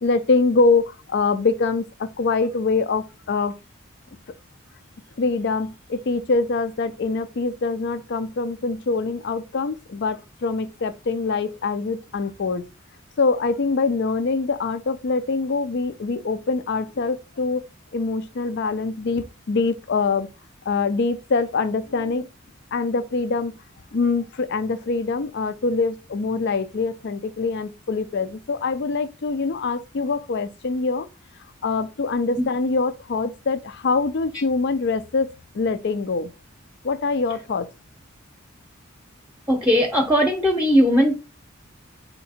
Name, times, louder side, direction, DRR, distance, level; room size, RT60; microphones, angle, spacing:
voice 1, 0.0-3.5 5.2-12.6 13.2-17.6 17.9-20.3 20.7-22.3 22.7-23.6 23.9-31.1 31.6-36.3 36.8-37.7, left 4 dB, 55° left, 0.5 m, -24 dB
voice 2, 39.5-41.1, equal, 10° right, 0.8 m, -18 dB
4.4 x 2.8 x 4.2 m
head